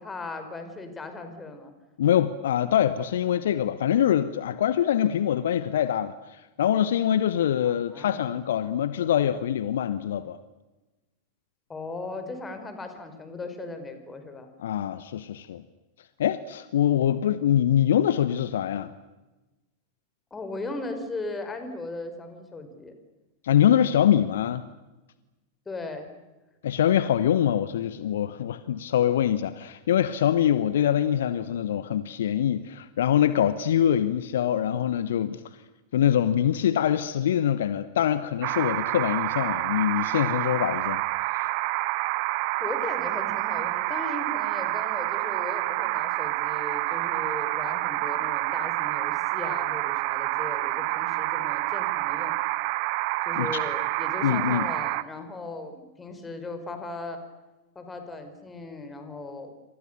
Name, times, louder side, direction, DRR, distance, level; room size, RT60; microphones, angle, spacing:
voice 1, 0.0-1.7 7.6-8.3 11.7-14.5 20.3-22.9 25.7-26.1 42.6-52.3 53.3-57.2 57.8-59.5, left 3 dB, 15° left, 5.2 m, -37 dB
voice 2, 2.0-10.4 14.6-15.6 16.2-18.9 23.4-24.6 26.6-35.4 35.9-41.0 41.3-41.5 53.3-53.5 54.2-54.7, left 10 dB, 60° left, 1.1 m, -24 dB
sound 1, 38.4-55.0, right 21 dB, 45° right, 1.0 m, -28 dB
28.5 x 26.0 x 6.9 m
figure-of-eight pair, 90°, 0 cm